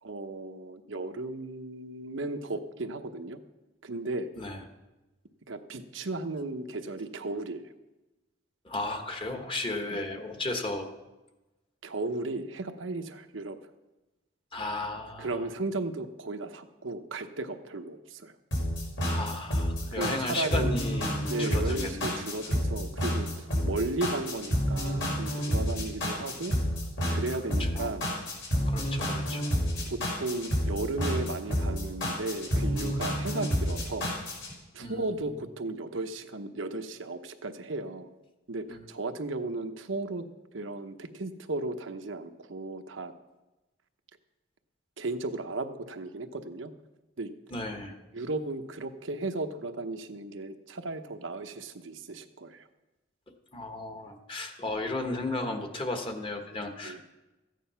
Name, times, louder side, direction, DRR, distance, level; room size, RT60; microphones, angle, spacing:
voice 1, 0.0-3.4 3.8-4.3 5.5-7.6 9.9-10.0 11.8-13.6 15.2-18.3 19.9-20.8 21.3-26.5 27.1-28.1 29.9-34.1 34.7-38.2 38.5-40.2 40.5-43.1 45.0-46.7 47.2-47.3 48.1-52.7 56.8-57.0, right 2 dB, 85° right, 7 dB, 0.9 m, -35 dB
voice 2, 8.6-10.9 14.5-15.3 19.0-22.2 27.6-27.9 28.7-29.5 34.8-35.0 38.7-38.9 47.5-48.0 53.5-57.0, left 2 dB, 30° left, 5 dB, 1.4 m, -34 dB
sound 1, 18.5-34.5, equal, 75° left, 5.1 m, -29 dB
14.5 x 9.3 x 5.7 m, 1.1 s
head